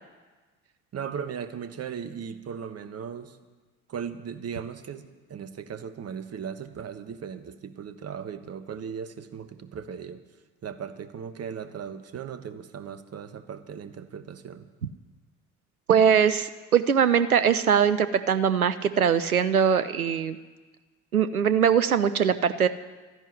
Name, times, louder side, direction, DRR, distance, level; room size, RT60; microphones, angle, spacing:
voice 1, 0.9-3.4 3.9-10.2 10.6-14.7, right 7 dB, 35° right, 11 dB, 1.3 m, -37 dB
voice 2, 15.9-20.4 21.1-22.7, right 7 dB, 90° right, 13 dB, 0.5 m, -21 dB
13.5 x 10.5 x 9.8 m, 1.3 s
figure-of-eight pair, 50°, 42 cm